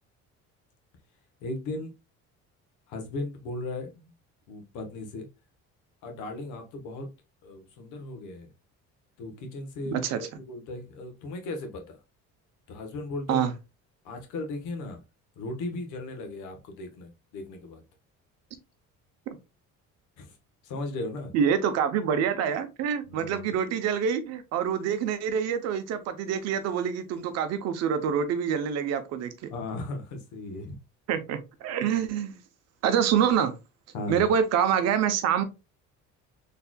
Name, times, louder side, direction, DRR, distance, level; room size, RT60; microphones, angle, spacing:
voice 1, 1.4-1.9 2.9-4.1 4.5-5.3 6.0-7.1 7.4-8.5 9.2-10.0 10.4-12.0 12.7-13.5 14.0-15.0 15.4-17.8 20.2-20.3 20.6-21.3 23.1-23.5 29.5-30.8 33.9-34.2, left 2 dB, 90° left, 1.2 m, -36 dB
voice 2, 21.3-29.5 31.1-32.4 32.8-33.6 34.1-35.4, right 8 dB, 60° right, 0.7 m, -26 dB
4.1 x 3.3 x 2.3 m
cardioid pair, 175°, 29 cm